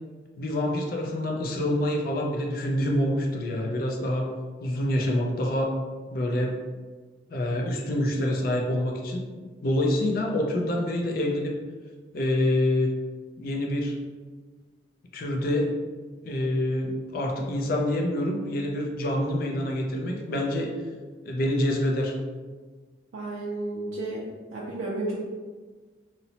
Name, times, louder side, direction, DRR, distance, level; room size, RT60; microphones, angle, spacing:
voice 1, 0.4-4.3 4.6-5.8 6.1-6.6 7.3-9.3 9.6-11.5 12.1-12.9 13.4-14.0 15.1-15.7 16.2-20.7 21.3-22.2, left 1 dB, 50° left, 0 dB, 0.3 m, -26 dB
voice 2, 23.1-24.2 24.5-25.2, right 2 dB, 90° right, -4 dB, 0.4 m, -32 dB
2.7 x 2.0 x 2.8 m, 1.4 s
head